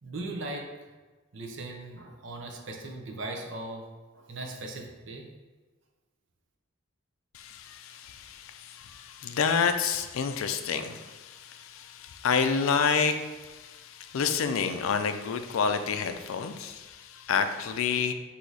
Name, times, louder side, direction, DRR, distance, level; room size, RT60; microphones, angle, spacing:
voice 1, 0.0-0.9 1.3-5.3, right 2 dB, 60° right, 2 dB, 0.7 m, -39 dB
voice 2, 7.3-18.1, left 6 dB, 75° left, 8 dB, 0.4 m, -29 dB
4.6 x 2.7 x 4.0 m, 1.3 s
head